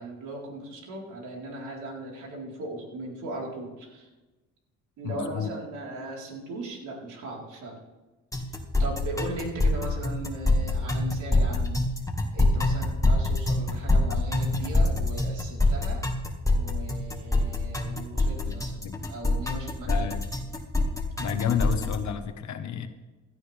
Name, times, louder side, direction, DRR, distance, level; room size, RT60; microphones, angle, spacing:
voice 1, 0.0-4.1 5.0-7.8 8.4-11.8 12.3-16.0 16.5-18.8 19.1-20.1, right 2 dB, 80° right, -2 dB, 4.3 m, -38 dB
voice 2, 5.0-5.5 18.5-18.6 18.8-19.0 19.9-20.2 21.2-22.9, left 7 dB, 70° left, 9 dB, 1.3 m, -30 dB
sound 1, 8.3-21.9, left 2 dB, 10° left, 1.9 m, -25 dB
16.0 x 12.5 x 3.5 m, 1.1 s
cardioid pair, 90°, 30 cm